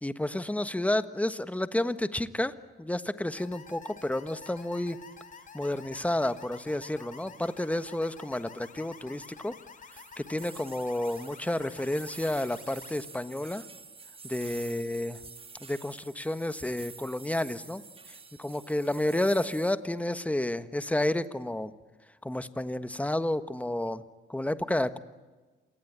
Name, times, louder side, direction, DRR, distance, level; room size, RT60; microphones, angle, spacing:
voice 1, 0.0-5.0 5.5-9.6 10.2-13.6 14.2-15.2 15.6-17.8 18.4-21.7 22.2-24.0 24.3-25.0, left 1 dB, 5° left, 12 dB, 1.3 m, -30 dB
sound 1, 3.4-13.0, left 5 dB, 40° left, 2.8 m, -50 dB
sound 2, 9.9-19.7, right 4 dB, 30° right, 1.4 m, -48 dB
27.5 x 19.5 x 9.6 m, 1.3 s
cardioid pair, 90°, 20 cm